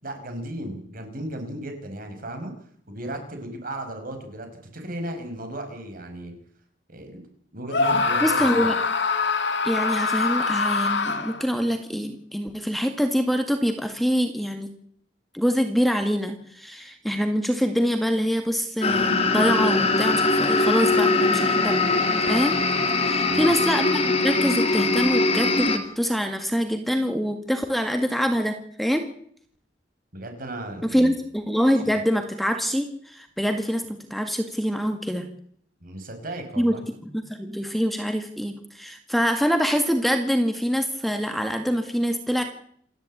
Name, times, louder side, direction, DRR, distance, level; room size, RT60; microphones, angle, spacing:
voice 1, 0.0-2.5 2.9-4.5 4.7-6.3 6.9-7.2 7.5-8.8 23.2-23.5 30.1-31.1 35.8-36.8, right 1 dB, 50° right, 6 dB, 5.5 m, -35 dB
Screaming, 7.7-11.5, left 4 dB, 70° left, 2.2 m, -24 dB
voice 2, 8.2-8.7 9.6-14.7 15.3-21.8 22.2-22.6 23.0-29.0 30.8-35.3 36.6-42.4, equal, ahead, 6 dB, 1.9 m, -25 dB
sound 1, 18.8-25.8, left 3 dB, 35° left, 3.1 m, -21 dB
28.0 x 11.5 x 8.7 m, 0.63 s
head